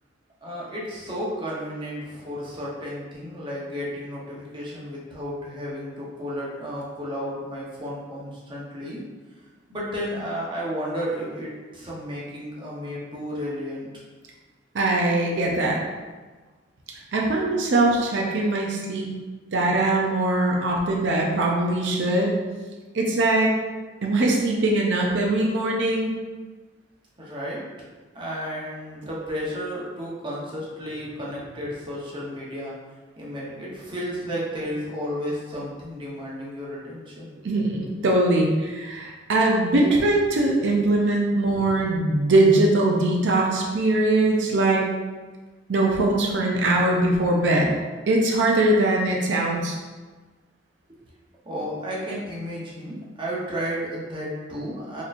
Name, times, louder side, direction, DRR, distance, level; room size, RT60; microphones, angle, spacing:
voice 1, 0.4-9.0 9.7-13.9 27.2-27.9 28.1-32.7 33.2-37.3 41.4-41.9 51.4-55.0, equal, 25° right, -6 dB, 0.9 m, -33 dB
voice 2, 14.7-15.8 17.1-19.1 19.5-22.3 22.9-23.5 24.0-26.1 37.4-44.8 45.7-47.7 48.1-49.8, right 2 dB, 75° right, -1 dB, 0.5 m, -21 dB
4.2 x 2.9 x 2.5 m, 1.3 s
head